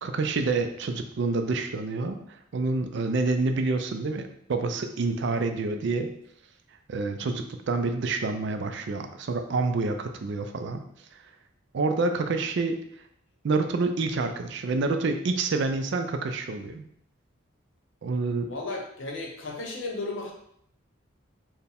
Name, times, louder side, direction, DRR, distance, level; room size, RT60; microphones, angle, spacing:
voice 1, 0.0-2.2 2.5-6.1 6.9-10.8 11.7-12.8 13.4-16.8 18.0-18.5, right 3 dB, 55° right, 6 dB, 0.4 m, -27 dB
voice 2, 18.5-20.3, left 2 dB, 65° left, 0 dB, 0.8 m, -35 dB
4.5 x 2.1 x 3.4 m, 0.71 s
head